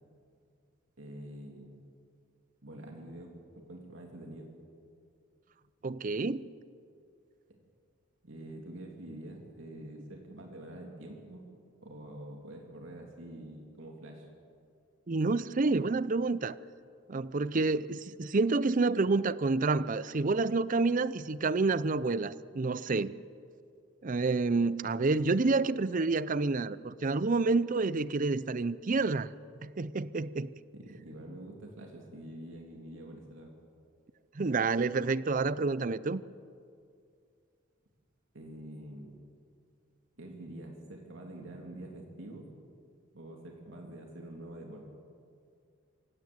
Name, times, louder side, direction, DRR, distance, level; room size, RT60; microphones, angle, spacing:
voice 1, 1.0-1.8 2.6-3.3 3.7-4.5 7.5-7.6 8.2-11.4 11.8-14.3 30.7-33.5 38.3-39.2 40.2-42.5 43.1-44.9, right 1 dB, 75° right, 2.8 m, -46 dB
voice 2, 5.8-6.5 15.1-16.6 17.1-23.2 24.0-29.3 29.6-30.5 34.3-36.2, right 3 dB, 40° right, 0.5 m, -29 dB
25.0 x 17.0 x 7.9 m
head